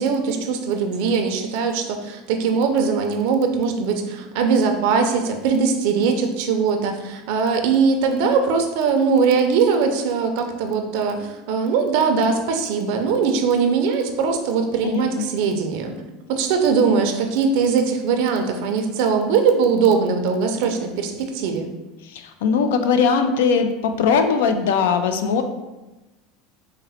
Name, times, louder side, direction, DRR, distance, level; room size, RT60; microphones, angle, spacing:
voice 1, 0.0-15.9 16.3-21.7, right 5 dB, 65° right, 5 dB, 0.4 m, -21 dB
voice 2, 14.8-15.2 22.0-25.4, left 6 dB, 90° left, 8 dB, 0.4 m, -20 dB
3.9 x 2.1 x 4.0 m, 1.1 s
supercardioid pair, 145°, 0 cm